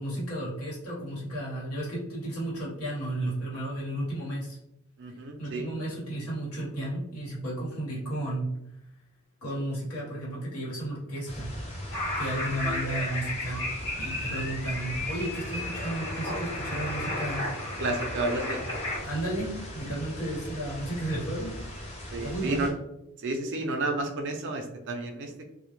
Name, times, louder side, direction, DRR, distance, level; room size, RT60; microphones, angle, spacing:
voice 1, 0.0-4.6 5.4-8.5 9.4-11.5 12.2-13.6 14.0-17.6 19.0-21.6 22.2-22.7, right 1 dB, 80° left, -6 dB, 1.1 m, -33 dB
voice 2, 5.0-5.7 17.8-18.6 22.1-22.7 23.2-25.5, right 2 dB, 55° right, 4 dB, 0.4 m, -31 dB
sound 1, 11.3-22.7, equal, 30° left, 0.5 m, -40 dB
sound 2, 11.9-19.0, left 1 dB, 55° left, 1.0 m, -34 dB
2.1 x 2.0 x 2.9 m, 0.83 s
head